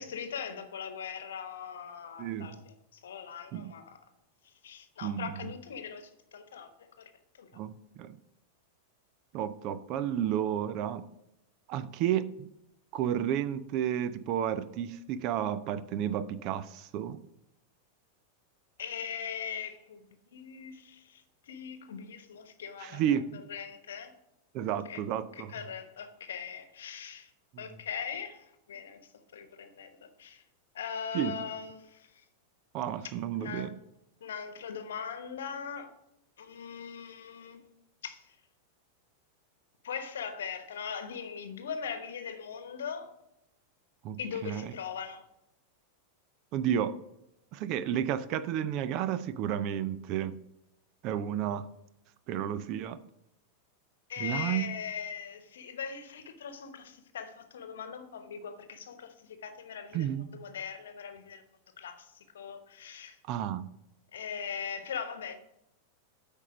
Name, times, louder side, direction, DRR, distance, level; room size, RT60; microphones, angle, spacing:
voice 1, 0.0-4.0 4.4-6.9 7.4-7.5 18.8-23.0 23.5-24.1 24.9-25.0 25.3-27.3 27.6-29.0 29.3-30.4 30.7-32.2 33.3-33.7 34.2-35.9 36.4-37.7 38.0-38.4 39.8-43.1 44.2-45.2 54.1-61.4 61.8-63.2 64.1-65.4, left 7 dB, 65° left, 1.0 m, -40 dB
voice 2, 2.2-2.6 3.5-3.7 5.0-5.4 7.5-8.2 9.3-11.1 11.7-12.5 12.9-17.2 22.8-23.4 24.5-25.5 31.1-31.3 32.7-33.7 44.0-44.7 46.5-47.0 47.5-50.4 51.0-51.7 52.3-53.0 54.2-54.7 59.9-60.3 63.3-63.7, right 10 dB, 40° right, 0.5 m, -32 dB
8.3 x 5.3 x 5.0 m
figure-of-eight pair, 90°, 0 cm